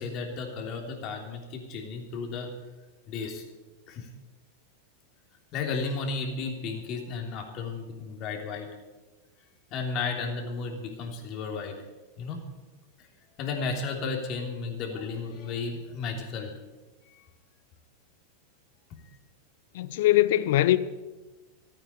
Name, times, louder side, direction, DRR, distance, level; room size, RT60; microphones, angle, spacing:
voice 1, 0.0-2.5 3.1-3.4 3.9-4.1 5.5-8.7 9.7-11.8 12.2-12.4 13.4-16.5 17.0-17.2, left 4 dB, 45° left, 3.2 m, -33 dB
voice 2, 19.7-20.8, left 15 dB, 70° left, 0.7 m, -21 dB
14.0 x 9.0 x 8.3 m
hypercardioid pair, 110°, 0 cm